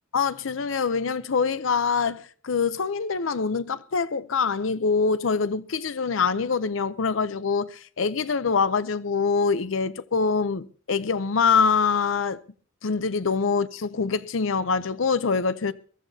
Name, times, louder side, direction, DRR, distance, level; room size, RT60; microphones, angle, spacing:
voice 1, 0.1-12.4 12.8-15.7, left 5 dB, 80° left, 0.6 m, -24 dB
22.5 x 14.5 x 2.8 m
head